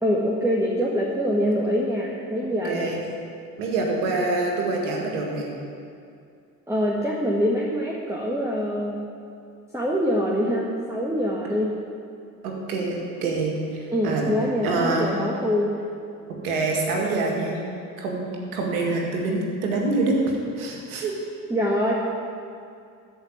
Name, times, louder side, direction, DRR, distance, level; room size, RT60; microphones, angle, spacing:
voice 1, 0.0-2.9 6.7-9.0 9.7-11.7 13.9-15.8 21.5-21.9, equal, 5° right, -4 dB, 1.9 m, -24 dB
voice 2, 2.6-3.0 3.6-5.5 12.4-14.3 14.6-15.1 16.4-17.6 18.0-20.2 20.6-21.1, right 3 dB, 80° right, 0 dB, 1.9 m, -26 dB
13.5 x 5.2 x 8.9 m, 2.4 s
hypercardioid pair, 50°, 43 cm